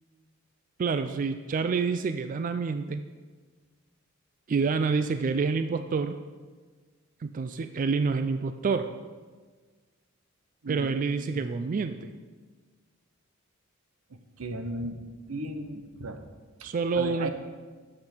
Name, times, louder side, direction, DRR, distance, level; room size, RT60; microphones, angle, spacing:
voice 1, 0.8-3.0 4.5-6.2 7.2-8.9 10.7-12.1 16.6-17.3, right 4 dB, 40° right, 9 dB, 0.3 m, -28 dB
voice 2, 14.4-15.0 15.3-16.2 16.6-16.7 16.9-17.3, right 2 dB, 85° right, 8 dB, 0.9 m, -35 dB
12.0 x 7.5 x 4.5 m, 1.4 s
head